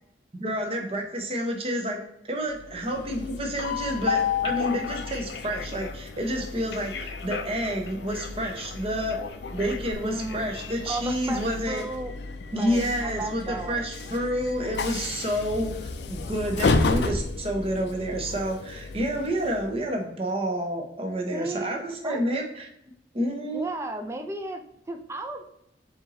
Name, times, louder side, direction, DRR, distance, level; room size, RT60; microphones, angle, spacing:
voice 1, 0.3-9.2 9.5-11.8 12.5-22.7 23.1-23.7, equal, 30° right, 2 dB, 0.8 m, -29 dB
Train, 2.6-19.8, left 4 dB, 70° left, 0.4 m, -32 dB
voice 2, 10.0-12.1 12.5-13.8 21.3-22.2 23.5-24.6 24.9-25.4, right 2 dB, 15° right, 5 dB, 0.4 m, -34 dB
4.5 x 2.9 x 3.7 m, 0.78 s
head